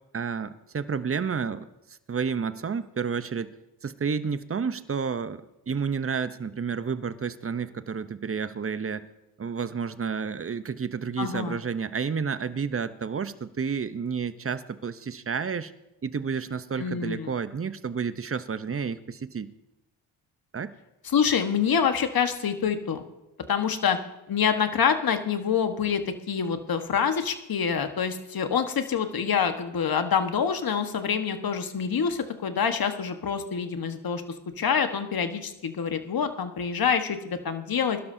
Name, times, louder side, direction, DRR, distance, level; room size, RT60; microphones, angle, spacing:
voice 1, 0.1-1.7 2.1-3.5 3.8-9.1 9.4-15.7 16.0-19.5 20.5-20.7, right 6 dB, 25° right, 14 dB, 0.8 m, -30 dB
voice 2, 11.2-11.6 16.8-17.3 21.1-23.0 23.5-24.0 24.3-34.2 34.6-38.0, left 7 dB, 45° left, 7 dB, 1.4 m, -26 dB
21.5 x 12.0 x 2.8 m, 0.94 s
supercardioid pair, 50°, 49 cm